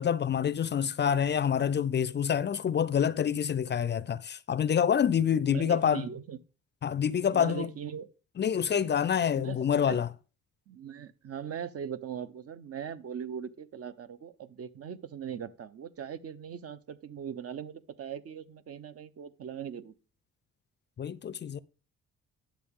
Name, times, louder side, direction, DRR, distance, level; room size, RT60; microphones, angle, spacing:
voice 1, 0.0-6.1 6.8-7.7 8.4-10.1 21.0-21.6, left 8 dB, 35° left, 0.5 m, -27 dB
voice 2, 5.1-6.4 7.3-8.1 9.3-10.0 10.7-19.9, right 8 dB, 50° right, 0.8 m, -40 dB
10.5 x 7.0 x 3.6 m
cardioid pair, 90°, 30 cm